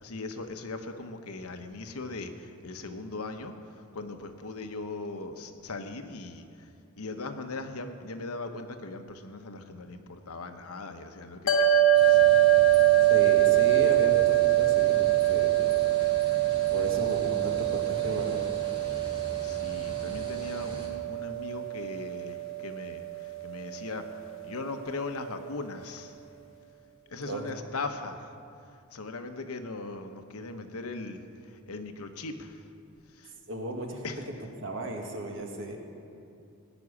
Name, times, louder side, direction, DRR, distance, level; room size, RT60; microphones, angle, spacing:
voice 1, 0.0-6.7 7.0-12.2 18.9-24.1 24.4-26.2 27.1-28.3 28.7-32.6 33.1-33.3 34.0-34.3, left 3 dB, 85° left, 7 dB, 1.0 m, -39 dB
sound 1, 11.5-24.0, right 13 dB, 65° left, 1.3 m, -24 dB
sound 2, 11.9-20.9, right 1 dB, 25° right, 2.2 m, -42 dB
voice 2, 13.1-15.5 16.7-18.4 27.2-27.5 33.5-34.1 34.6-35.8, right 1 dB, 60° right, 2 dB, 1.9 m, -34 dB
17.5 x 6.2 x 9.7 m, 2.6 s
head